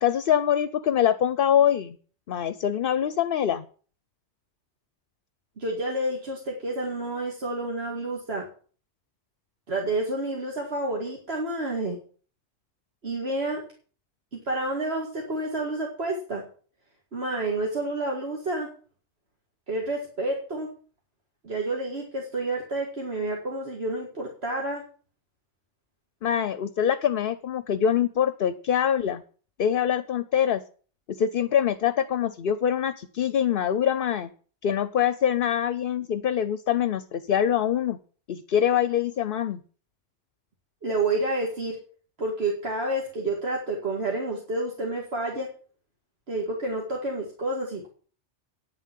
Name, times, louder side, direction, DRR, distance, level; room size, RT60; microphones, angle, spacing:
voice 1, 0.0-2.0 2.3-3.7 26.2-29.2 29.6-30.6 31.2-34.3 34.6-38.0 38.3-39.6, left 9 dB, 55° left, 14 dB, 0.8 m, -24 dB
voice 2, 5.6-8.5 9.7-12.0 13.0-13.6 14.3-16.4 17.1-18.7 19.7-20.7 21.4-24.8 40.8-41.8 42.2-45.5 46.3-47.9, right 2 dB, 60° right, -1 dB, 2.4 m, -29 dB
9.8 x 7.4 x 8.3 m, 0.42 s
omnidirectional pair, 1.2 m